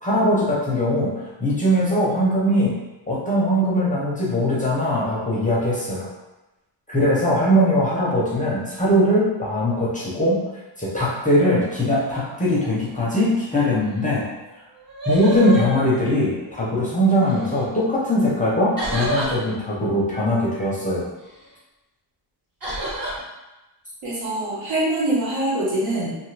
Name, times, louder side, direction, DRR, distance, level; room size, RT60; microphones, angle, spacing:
voice 1, 0.0-2.8 3.1-6.1 6.9-10.4 10.8-14.3 15.1-21.1, equal, 15° left, -7 dB, 0.5 m, -21 dB
sound 1, 14.3-14.4 14.7-16.5 17.2-17.7 18.8-19.3 22.6-23.1, right 1 dB, 45° right, 1.2 m, -28 dB
voice 2, 24.0-26.1, right 1 dB, 70° right, -6 dB, 1.2 m, -24 dB
2.6 x 2.4 x 3.1 m, 1.0 s
wide cardioid pair, 155°, 47 cm